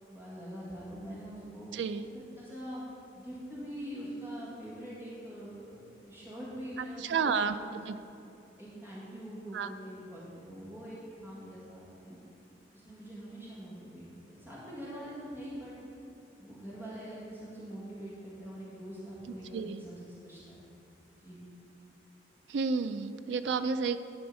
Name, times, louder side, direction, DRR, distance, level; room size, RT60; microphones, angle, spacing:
voice 1, 0.1-1.7 2.1-2.8 3.1-7.3 8.6-12.2 12.7-15.7 16.4-20.6 21.2-21.4, equal, 10° right, -9 dB, 1.8 m, -44 dB
voice 2, 1.7-2.1 7.0-7.6 7.9-8.0 9.5-9.7 19.5-19.8 22.5-24.0, right 5 dB, 75° right, 11 dB, 0.4 m, -31 dB
11.0 x 4.3 x 5.4 m, 2.7 s
head